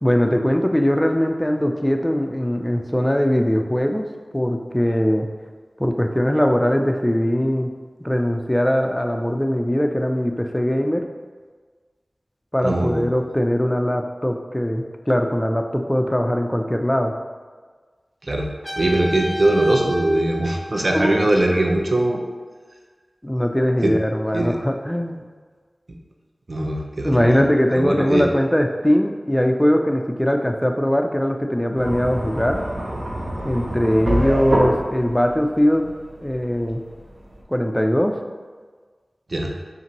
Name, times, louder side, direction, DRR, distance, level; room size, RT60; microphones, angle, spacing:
voice 1, 0.0-4.0 4.3-5.3 5.8-7.7 8.0-11.0 12.5-17.1 20.9-21.3 23.2-25.2 27.0-32.6 33.4-35.9 36.2-36.8 37.5-38.2, equal, 10° left, 4 dB, 0.4 m, -21 dB
voice 2, 12.6-13.1 18.2-18.5 18.8-22.2 23.8-23.9 24.3-24.6 25.9-26.0 26.5-27.4 27.7-28.3 39.3-39.5, right 1 dB, 50° right, 1 dB, 0.5 m, -21 dB
Trumpet, 18.6-21.5, left 1 dB, 25° left, 1.1 m, -32 dB
sound 1, 31.8-37.4, right 1 dB, 85° right, 0.7 m, -26 dB
5.6 x 2.6 x 2.9 m, 1.5 s
wide cardioid pair, 65°, 0 cm